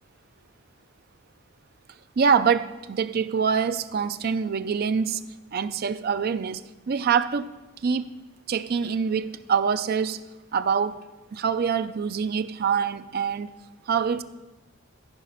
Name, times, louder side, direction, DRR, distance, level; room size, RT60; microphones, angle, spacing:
voice 1, 2.2-5.2 5.5-7.5 7.8-8.1 8.5-10.3 10.5-11.0 11.3-13.5 13.9-14.2, right 6 dB, 45° right, 12 dB, 0.4 m, -25 dB
14.5 x 5.1 x 5.6 m, 1.1 s
head